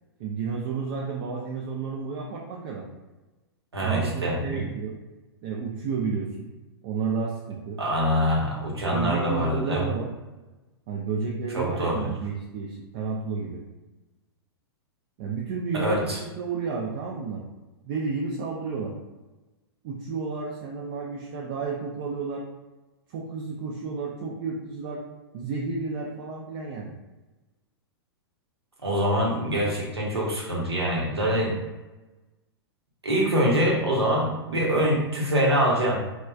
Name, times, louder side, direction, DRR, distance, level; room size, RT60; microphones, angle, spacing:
voice 1, 0.2-2.8 3.8-5.0 5.4-6.5 6.8-7.8 8.9-10.1 10.9-13.6 15.2-17.4 17.8-18.9 19.8-22.4 23.1-25.0 25.3-26.9, right 4 dB, 45° right, -2 dB, 0.4 m, -31 dB
voice 2, 3.7-4.6 7.8-9.9 11.5-12.1 15.7-16.2 28.8-31.6 33.0-36.0, equal, 90° right, -3 dB, 0.8 m, -24 dB
3.1 x 2.1 x 2.3 m, 1.1 s
figure-of-eight pair, 105°, 13 cm